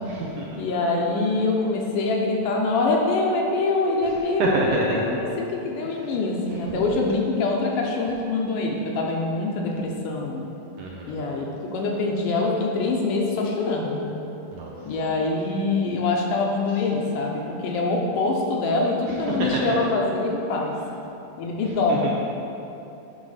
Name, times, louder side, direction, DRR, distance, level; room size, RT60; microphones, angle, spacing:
voice 1, 0.1-0.6 4.1-4.2 4.4-5.2 5.8-5.9 10.8-11.2 14.5-14.7 19.1-19.5 21.9-22.1, right 2 dB, 75° right, -3 dB, 1.8 m, -27 dB
voice 2, 0.6-10.5 11.1-14.1 14.9-20.7 21.4-22.1, left 3 dB, 75° left, -1 dB, 2.2 m, -24 dB
9.5 x 3.6 x 6.5 m, 2.9 s
omnidirectional pair, 4.1 m